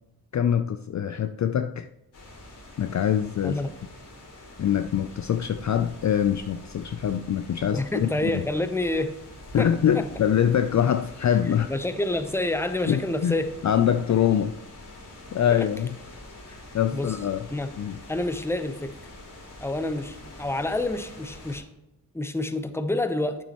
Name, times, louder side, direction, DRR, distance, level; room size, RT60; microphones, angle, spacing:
voice 1, 0.3-1.9 2.8-3.6 4.6-8.5 9.5-11.7 12.9-13.4 13.6-14.6 15.3-15.9 16.5-17.5 17.8-18.0, left 9 dB, 45° left, 10 dB, 0.4 m, -24 dB
sound 1, 2.1-21.6, left 1 dB, 80° left, 2.8 m, -45 dB
voice 2, 3.4-3.7 7.7-9.1 9.6-9.7 9.9-10.0 11.4-13.5 15.6-15.7 16.9-17.2 17.5-17.7 18.1-18.9 19.6-21.7 22.1-23.4, left 1 dB, 5° left, 9 dB, 0.8 m, -28 dB
8.9 x 7.0 x 3.0 m, 0.90 s
cardioid pair, 50°, 40 cm